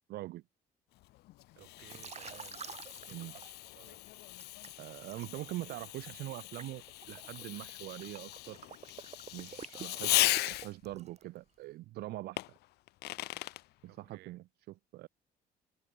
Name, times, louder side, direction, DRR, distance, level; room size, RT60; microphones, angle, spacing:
voice 1, 0.1-0.4 3.1-3.3 4.8-8.6 9.3-10.2 10.5-12.4 13.8-14.4 14.9-15.1, right 17 dB, 70° right, 0.5 m, -43 dB
Fireworks, 1.0-10.9 12.4-13.6, left 18 dB, 75° left, 0.6 m, -37 dB
voice 2, 1.5-2.7 3.0-4.0 4.2-4.3 9.7-10.0 13.9-14.4, right 20 dB, 90° right, 4.0 m, -58 dB
Liquid, 1.9-3.9 4.4-11.4, right 7 dB, 40° right, 3.2 m, -49 dB
cardioid pair, 110°, 17 cm